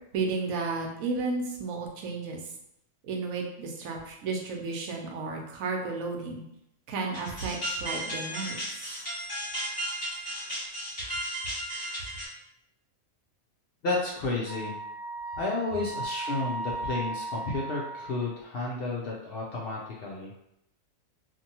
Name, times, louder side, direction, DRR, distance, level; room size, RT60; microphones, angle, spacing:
voice 1, 0.1-2.5 3.0-6.4 6.9-8.6, right 3 dB, 80° right, 1 dB, 1.0 m, -33 dB
sound 1, 7.1-12.3, right 1 dB, 40° left, 1.0 m, -35 dB
voice 2, 13.8-14.8 15.4-20.4, left 3 dB, 70° left, -3 dB, 0.5 m, -32 dB
Wind instrument woodwind instrument, 14.4-18.3, right 2 dB, 40° right, 0.4 m, -36 dB
2.8 x 2.5 x 2.7 m, 0.78 s
omnidirectional pair, 1.5 m